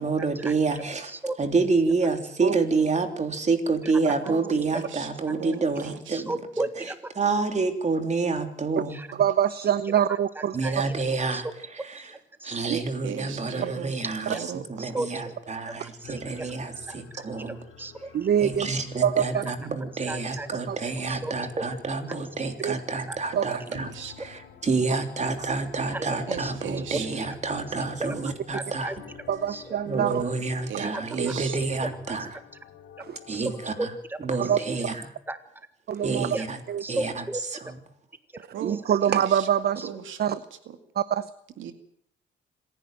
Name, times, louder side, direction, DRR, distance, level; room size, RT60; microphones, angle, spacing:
voice 1, 0.0-1.1 1.4-6.3 7.2-9.0 10.5-11.5 12.4-14.4 14.7-17.6 18.4-23.9 24.2-28.9 29.9-32.3 33.3-33.7 34.2-35.1 36.0-36.6 36.9-37.2, right 4 dB, 35° right, 6 dB, 3.4 m, -28 dB
voice 2, 1.1-1.7 3.8-3.9 6.1-7.0 8.9-9.1 10.1-10.7 11.3-11.4 11.8-12.6 14.3-14.4 14.8-15.3 16.0-16.5 16.9-18.1 20.1-20.5 21.1-21.6 23.1-23.2 24.0-24.1 25.9-26.1 26.4-26.5 27.2-27.3 28.0-28.1 28.5-29.0 29.5-29.8 30.8-31.6 33.3-33.5 33.8-34.2 35.3-35.4 36.3-36.4 36.8-37.4 38.3-38.8 39.1-39.2 39.8-39.9, right 2 dB, 10° right, 10 dB, 1.6 m, -35 dB
voice 3, 4.3-6.2 13.0-13.9 14.3-15.0 23.3-24.1 26.3-27.1 30.7-31.6 38.5-39.5 39.8-40.2 40.7-40.8 41.6-41.7, right 9 dB, 75° right, 9 dB, 2.2 m, -38 dB
voice 4, 9.2-10.5 12.7-12.8 18.1-18.7 19.0-19.4 20.7-20.8 22.6-22.7 23.4-23.5 28.2-28.3 29.3-30.2 31.2-31.3 33.0-33.2 34.4-34.6 35.9-36.4 36.7-36.8 38.6-39.8 40.2-40.4 41.0-41.3, right 9 dB, 55° right, 15 dB, 0.9 m, -24 dB
sound 1, 16.0-33.9, left 8 dB, 90° left, 3.7 m, -49 dB
26.5 x 11.0 x 9.1 m, 0.72 s
cardioid pair, 90°, 20 cm